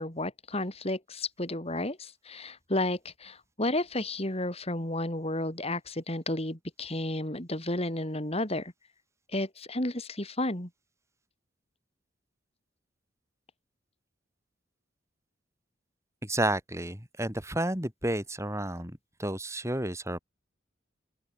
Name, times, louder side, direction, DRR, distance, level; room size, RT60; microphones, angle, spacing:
voice 1, 0.0-8.7 9.3-10.7, left 1 dB, 30° left, 4.6 m, -32 dB
voice 2, 16.2-20.2, right 1 dB, 15° right, 6.7 m, -31 dB
open air
head